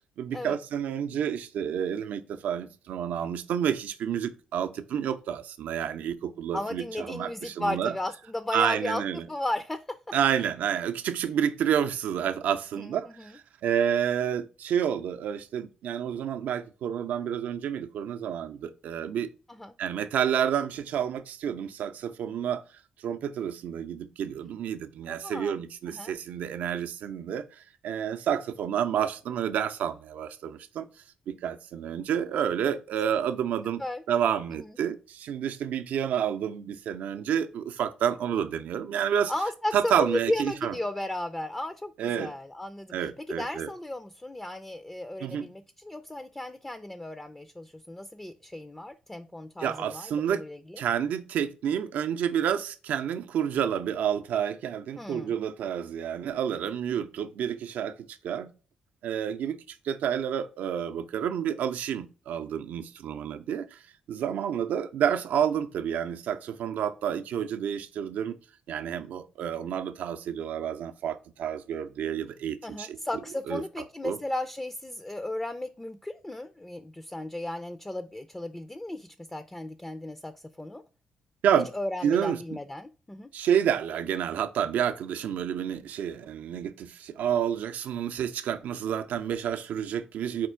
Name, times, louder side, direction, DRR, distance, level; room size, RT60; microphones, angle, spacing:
voice 1, 0.2-8.0 8.5-9.3 10.1-19.3 19.8-22.6 23.0-30.9 31.3-33.8 34.1-39.3 39.7-40.7 42.0-42.3 42.9-43.7 45.2-45.5 49.6-50.4 50.8-58.5 59.0-63.8 64.1-68.4 68.7-73.0 73.5-73.6 74.0-74.2 81.4-81.7 82.0-82.6 83.3-90.5, right 9 dB, 80° right, 0.5 m, -29 dB
voice 2, 6.5-9.8 12.7-13.4 19.5-19.7 25.1-25.6 25.9-26.1 33.8-34.0 34.5-34.7 39.3-50.8 55.0-55.3 72.6-80.8 81.7-83.3, left 1 dB, 15° left, 0.4 m, -35 dB
4.4 x 2.4 x 4.4 m
cardioid pair, 80°, 3 cm